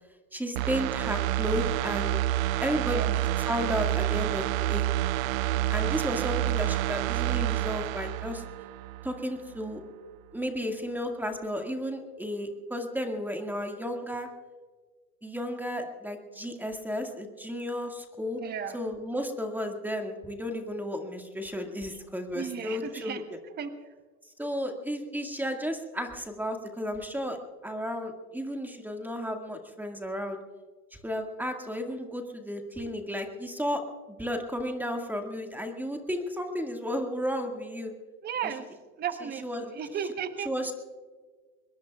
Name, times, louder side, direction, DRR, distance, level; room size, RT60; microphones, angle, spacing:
voice 1, 0.3-2.2 2.6-4.9 5.7-8.4 9.0-9.8 10.3-14.3 15.2-18.4 18.7-23.2 24.4-27.4 27.6-30.4 30.9-37.9 38.4-38.5 39.4-39.7 40.5-40.7, equal, 5° right, 4 dB, 2.0 m, -33 dB
sound 1, 0.6-9.2 9.6-9.7, right 14 dB, 65° right, 0.5 m, -28 dB
voice 2, 2.8-3.2 6.7-6.9 18.4-18.8 22.3-23.2 23.6-23.7 38.2-38.7 39.0-40.7, right 8 dB, 20° right, 9 dB, 1.1 m, -35 dB
24.5 x 21.0 x 2.4 m, 1.4 s
hypercardioid pair, 115°, 45 cm